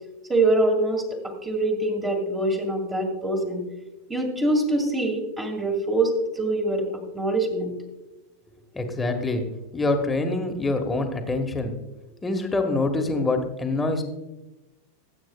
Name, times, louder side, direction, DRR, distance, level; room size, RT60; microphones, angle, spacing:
voice 1, 0.3-3.6 4.1-6.1 6.4-6.8 7.1-7.7, right 2 dB, 15° right, 1 dB, 2.3 m, -24 dB
voice 2, 8.7-9.4 9.7-11.7 12.2-14.0, left 2 dB, 10° left, 5 dB, 1.7 m, -25 dB
20.0 x 8.9 x 2.3 m, 1.0 s
figure-of-eight pair, 90°, 0 cm